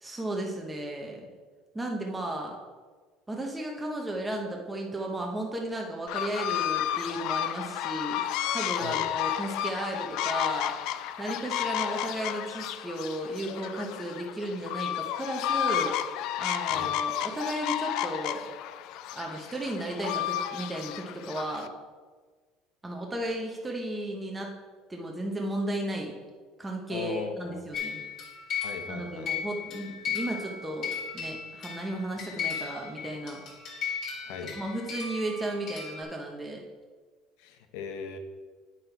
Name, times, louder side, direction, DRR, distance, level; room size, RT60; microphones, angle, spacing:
voice 1, 0.0-1.2 1.7-2.6 3.3-10.7 11.2-16.0 16.4-18.4 19.1-21.7 22.8-24.5 24.9-26.2 26.6-28.0 28.9-33.4 34.5-36.6, right 1 dB, 10° right, 0 dB, 0.7 m, -34 dB
sound 1, 6.1-21.7, left 11 dB, 55° left, 0.3 m, -32 dB
voice 2, 26.9-27.6 28.6-29.3 34.3-34.5 37.4-38.2, left 6 dB, 90° left, 6 dB, 1.0 m, -38 dB
sound 2, 27.7-36.0, left 6 dB, 40° left, 1.7 m, -36 dB
8.6 x 5.8 x 4.4 m, 1.4 s
cardioid pair, 170°, 0 cm